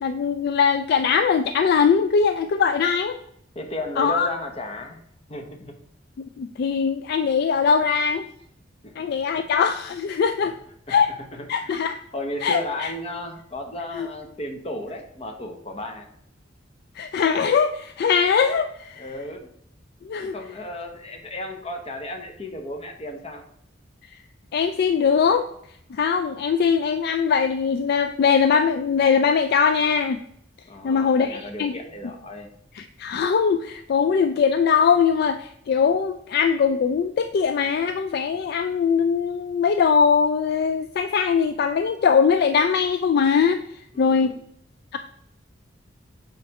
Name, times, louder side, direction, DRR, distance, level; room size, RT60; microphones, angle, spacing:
voice 1, 0.0-3.2 4.0-4.3 6.4-8.3 9.0-10.5 10.9-11.1 11.5-12.0 12.4-12.9 13.9-14.1 17.0-19.1 20.0-20.3 24.5-25.4 25.9-30.2 30.8-31.7 32.7-43.6 44.0-44.3 44.9-45.0, left 6 dB, 55° left, 9 dB, 0.3 m, -21 dB
voice 2, 3.5-5.0 5.3-5.7 8.8-9.4 10.4-10.5 10.9-11.8 12.1-16.1 19.0-19.5 20.2-23.4 30.7-32.5 43.9-44.4, left 1 dB, 30° left, 4 dB, 1.0 m, -34 dB
8.2 x 3.3 x 4.7 m, 0.70 s
head